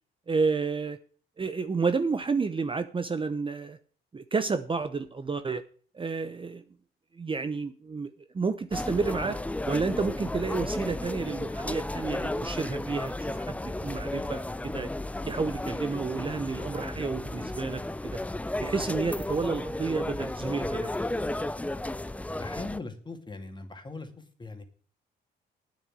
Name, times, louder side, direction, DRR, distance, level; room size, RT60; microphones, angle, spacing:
voice 1, 0.3-1.0 1.4-3.8 4.1-5.6 5.9-6.6 7.1-9.4 9.7-13.6 13.8-14.9 15.3-17.8 18.6-20.9, right 4 dB, 25° right, 10 dB, 0.8 m, -30 dB
sound 1, 8.7-22.8, left 1 dB, 5° left, 0.5 m, -33 dB
voice 2, 22.4-24.6, left 3 dB, 20° left, 6 dB, 2.2 m, -40 dB
9.2 x 7.2 x 8.9 m, 0.43 s
cardioid pair, 90°, 20 cm